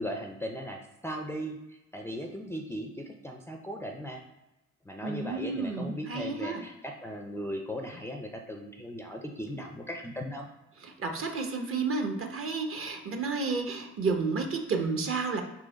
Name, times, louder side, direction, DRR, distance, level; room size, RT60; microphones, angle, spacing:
voice 1, 0.0-4.2 4.9-10.5, equal, 10° left, 1 dB, 0.4 m, -38 dB
voice 2, 5.0-6.6 10.8-15.4, right 4 dB, 45° right, 4 dB, 0.8 m, -31 dB
3.8 x 3.0 x 3.9 m, 0.96 s
cardioid pair, 90°, 30 cm